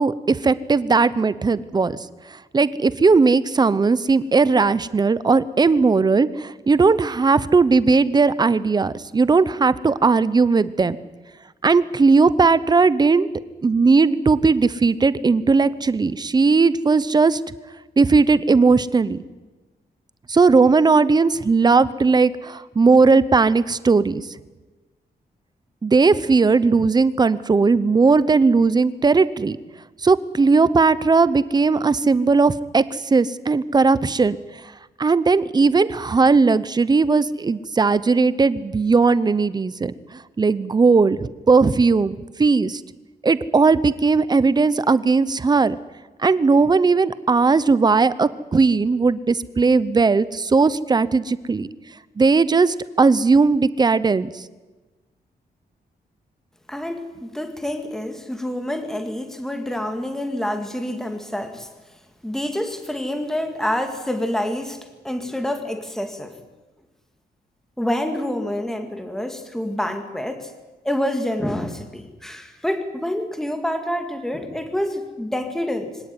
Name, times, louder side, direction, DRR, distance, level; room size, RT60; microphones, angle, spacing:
voice 1, 0.0-2.0 2.3-11.0 11.6-13.3 13.6-17.4 18.0-19.2 20.3-24.3 25.8-29.6 30.0-34.6 35.0-42.8 43.2-45.8 46.2-51.7 52.2-54.5, right 4 dB, 25° right, 16 dB, 0.8 m, -18 dB
voice 2, 56.7-61.7 62.2-66.4 67.8-70.5 70.8-76.0, left 1 dB, 5° left, 6 dB, 2.1 m, -27 dB
24.0 x 18.0 x 9.6 m, 1.2 s
wide cardioid pair, 175°, 16 cm